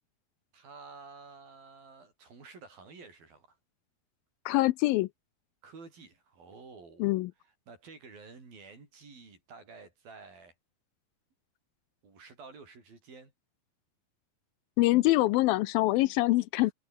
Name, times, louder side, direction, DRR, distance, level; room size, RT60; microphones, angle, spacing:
voice 1, 0.5-3.6 5.6-7.1 7.4-10.5 12.0-13.3 16.6-16.7, right 4 dB, 65° right, 8.7 m, -51 dB
voice 2, 4.5-5.1 7.0-7.3 14.8-16.7, left 18 dB, 80° left, 2.3 m, -24 dB
omnidirectional pair, 4.4 m